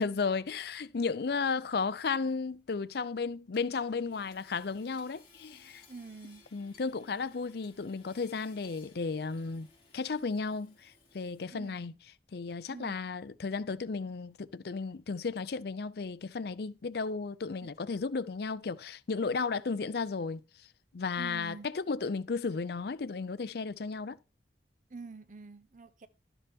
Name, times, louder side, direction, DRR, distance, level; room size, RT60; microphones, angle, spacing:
voice 1, 0.0-5.8 6.5-9.7 9.9-11.9 12.3-20.4 20.9-24.2, left 4 dB, 60° left, 0.5 m, -34 dB
Hammer / Sawing, 3.5-11.7, left 4 dB, 30° left, 3.9 m, -61 dB
voice 2, 5.9-6.4 11.5-11.8 12.7-13.0 17.6-17.7 21.2-21.7 24.9-26.1, right 4 dB, 45° right, 0.8 m, -46 dB
12.0 x 6.9 x 3.6 m
head